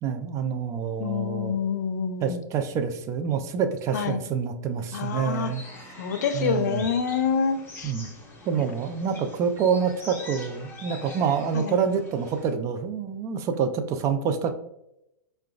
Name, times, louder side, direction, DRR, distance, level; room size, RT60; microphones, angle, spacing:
voice 1, 0.0-1.6 2.2-5.6 6.3-6.9 7.8-8.1 8.5-14.6, right 6 dB, 30° right, 8 dB, 0.4 m, -27 dB
voice 2, 1.0-2.4 3.9-4.2 4.9-5.5 6.0-7.9 11.5-11.8, left 6 dB, 75° left, 10 dB, 0.4 m, -27 dB
sound 1, 5.0-12.5, left 2 dB, 20° left, 0.8 m, -44 dB
4.6 x 2.2 x 2.3 m, 0.83 s
hypercardioid pair, 110°, 10 cm